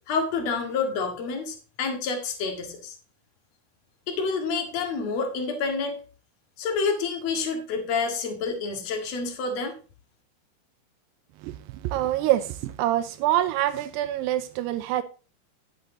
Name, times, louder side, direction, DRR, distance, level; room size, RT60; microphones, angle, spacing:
voice 1, 0.1-3.0 4.1-6.0 6.6-9.7, left 4 dB, 50° left, 2.4 m, -28 dB
voice 2, 11.4-15.0, right 13 dB, 80° right, 2.5 m, -26 dB
10.5 x 8.6 x 3.9 m
omnidirectional pair, 5.2 m